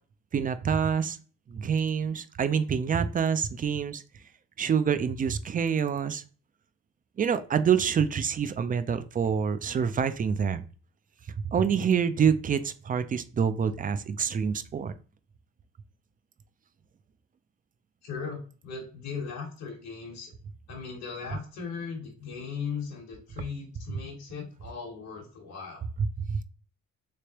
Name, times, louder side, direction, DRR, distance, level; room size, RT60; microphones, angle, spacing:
voice 1, 0.3-1.2 1.5-4.0 4.6-6.2 7.2-10.6 11.4-15.0 26.0-26.4, right 7 dB, 30° right, 12 dB, 0.3 m, -26 dB
voice 2, 18.0-20.3 20.7-25.8, left 5 dB, 60° left, -1 dB, 1.2 m, -38 dB
3.3 x 3.2 x 2.9 m, 0.39 s
cardioid pair, 90°, 30 cm